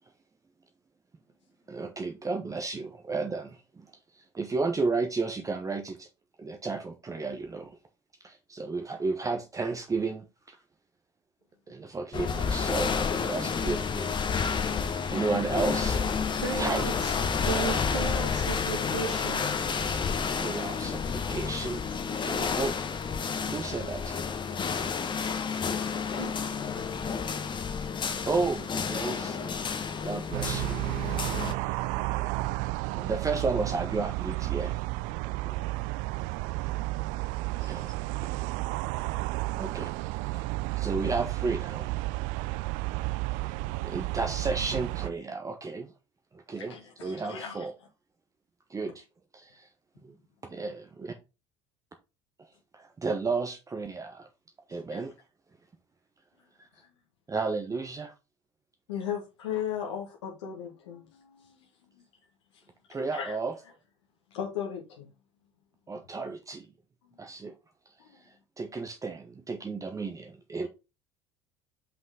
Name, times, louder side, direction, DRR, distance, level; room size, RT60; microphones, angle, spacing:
voice 1, 1.7-3.9 4.1-6.1 6.4-7.8 8.2-10.6 11.7-12.9 13.2-14.1 15.1-16.0 16.6-16.9 20.4-22.7 23.5-24.2 28.3-29.6 30.0-30.8 31.6-32.4 32.9-34.8 35.4-35.6 37.6-37.9 39.6-39.9 40.3-40.4 40.8-42.0 43.8-45.9 46.3-46.8 47.0-47.7 48.7-49.0 49.3-49.7 50.0-50.1 50.5-51.1 52.7-54.3 54.7-55.1 56.6-56.7 57.3-58.1 62.9-63.5 65.9-66.6 67.2-67.5 68.6-70.7, right 4 dB, 20° right, 1.0 m, -33 dB
sound 1, 12.1-31.5, left 6 dB, 30° left, 1.2 m, -30 dB
voice 2, 16.4-17.1 17.4-19.5 26.2-26.3, right 5 dB, 85° right, 1.6 m, -35 dB
sound 2, 30.3-45.1, right 20 dB, 60° right, 0.5 m, -32 dB
voice 3, 46.5-47.7 54.7-55.0 56.7-56.9 58.9-61.7 62.5-62.6 63.1-63.4 64.3-65.1 68.0-68.2, left 8 dB, 75° left, 1.7 m, -37 dB
5.8 x 5.5 x 3.8 m
figure-of-eight pair, 65°, 15 cm